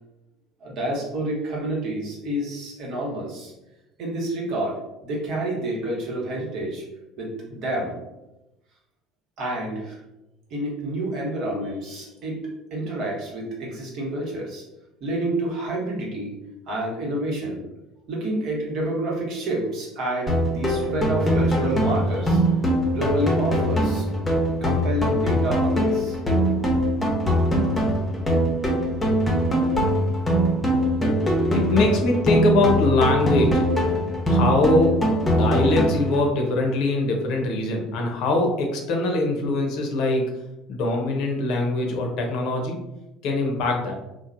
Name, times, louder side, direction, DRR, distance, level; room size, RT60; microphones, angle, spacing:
voice 1, 0.6-3.5 4.0-6.8 7.2-8.0 9.4-10.0 10.5-14.6 15.0-16.4 16.7-17.6 18.1-22.4 22.9-24.1 24.6-26.2, right 1 dB, 60° right, -3 dB, 0.9 m, -29 dB
sound 1, 20.3-36.3, equal, 15° left, 0.7 m, -22 dB
voice 2, 31.5-33.6 34.3-35.0 35.3-40.3 40.7-42.8 43.2-44.0, left 2 dB, 65° left, 1 dB, 0.6 m, -22 dB
3.0 x 2.0 x 2.5 m, 0.96 s
hypercardioid pair, 70°, 0 cm